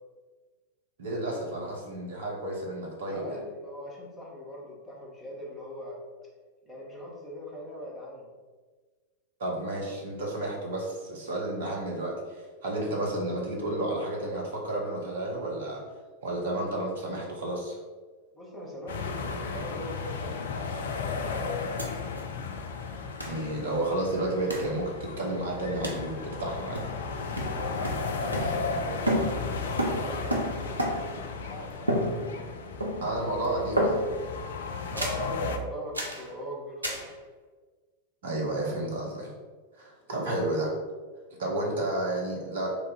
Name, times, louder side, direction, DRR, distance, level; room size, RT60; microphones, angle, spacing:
voice 1, 1.0-3.4 9.4-15.8 16.2-17.8 23.3-26.9 28.4-28.5 33.0-34.0 38.2-39.3 39.8-40.7 41.4-42.7, right 1 dB, 60° right, -2 dB, 1.0 m, -31 dB
voice 2, 3.1-6.0 6.6-8.3 18.3-20.4 21.0-21.7 27.5-30.8 31.5-32.3 34.9-37.1 40.1-40.2 41.5-41.7, equal, ahead, -6 dB, 1.1 m, -41 dB
sound 1, 18.9-35.6, left 4 dB, 60° left, 0.3 m, -35 dB
sound 2, 21.8-21.9 22.2-22.3 23.2-23.4 24.5-24.8 25.8-26.1 26.7-27.1 27.4-28.8 29.1-31.2 31.9-32.5 32.8-33.3 33.8-34.3 35.0-35.3 35.9-36.3 36.8-37.1, equal, 85° right, 0.5 m, -30 dB
3.1 x 2.6 x 4.0 m, 1.4 s
figure-of-eight pair, 90°, 0 cm